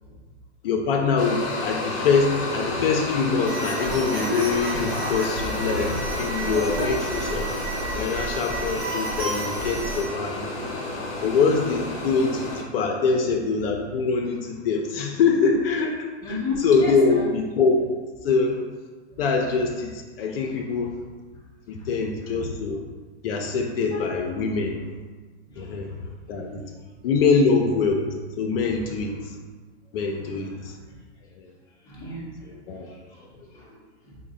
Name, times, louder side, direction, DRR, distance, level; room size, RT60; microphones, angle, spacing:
voice 1, 0.6-7.5 7.9-10.5 11.2-16.0 16.3-16.4 16.6-17.8 18.2-18.6 19.2-20.9 21.7-22.8 23.2-24.8 25.6-25.9 26.3-26.6 27.0-29.4 29.9-30.8 31.4-31.5 32.7-32.9, left 4 dB, 55° left, 1 dB, 0.5 m, -24 dB
sound 1, 1.2-12.6, left 2 dB, 35° left, 0.9 m, -31 dB
sound 2, 3.5-10.0, right 2 dB, 40° right, 0.8 m, -31 dB
voice 2, 16.2-17.3 19.1-19.2 21.3-21.4 21.8-21.9 22.2-22.5 25.5-26.0 26.3-26.4 26.8-27.0 27.4-27.5 28.8-28.9 30.4-30.5 30.9-31.0 31.7-34.2, left 3 dB, 10° left, -6 dB, 0.6 m, -36 dB
3.7 x 2.1 x 3.6 m, 1.4 s
hypercardioid pair, 130°, 34 cm